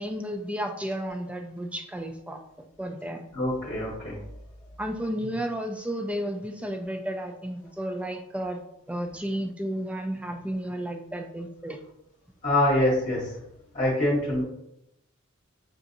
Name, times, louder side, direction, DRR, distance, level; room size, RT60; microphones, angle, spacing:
voice 1, 0.0-3.2 4.8-8.6 8.9-11.8, equal, 5° right, 4 dB, 0.3 m, -32 dB
voice 2, 3.3-4.2 12.4-13.4 13.7-14.4, left 1 dB, 40° left, -5 dB, 0.9 m, -24 dB
5.7 x 2.6 x 2.5 m, 0.80 s
head